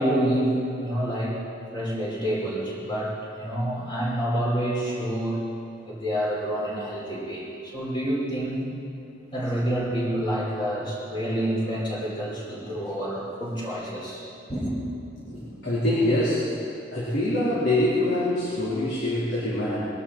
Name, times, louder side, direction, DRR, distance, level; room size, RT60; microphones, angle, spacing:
voice 1, 0.0-1.4 1.7-5.4 5.8-8.7 9.3-14.7, right 1 dB, 25° left, -6 dB, 5.1 m, -28 dB
voice 2, 15.3-16.5 16.9-19.9, left 1 dB, 65° left, -10 dB, 4.2 m, -24 dB
22.5 x 12.5 x 4.5 m, 2.5 s
head